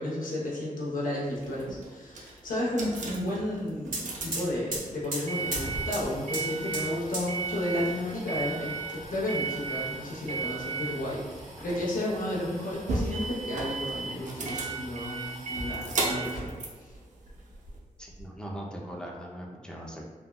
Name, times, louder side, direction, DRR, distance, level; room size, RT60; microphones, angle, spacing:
voice 1, 0.0-16.5, left 1 dB, 75° left, -5 dB, 0.7 m, -32 dB
sound 1, 1.3-17.8, right 3 dB, 60° right, 0.5 m, -36 dB
sound 2, 3.5-3.6 3.8-15.8 16.2-17.0 17.2-18.2, right 1 dB, 80° right, 1.4 m, -41 dB
voice 2, 18.0-20.1, equal, 5° left, -2 dB, 0.4 m, -40 dB
3.4 x 2.2 x 2.2 m, 1.3 s
wide cardioid pair, 115°, 14 cm